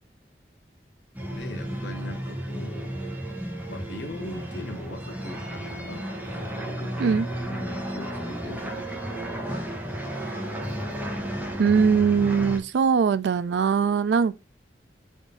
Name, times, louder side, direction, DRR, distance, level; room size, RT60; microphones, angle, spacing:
sound 1, 1.1-12.6, right 1 dB, 10° right, 0.7 m, -33 dB
voice 1, 1.3-3.0 3.7-7.2 7.5-9.8, left 1 dB, 75° left, 0.9 m, -41 dB
voice 2, 11.6-14.3, right 6 dB, 80° right, 0.3 m, -21 dB
3.6 x 2.5 x 3.7 m
head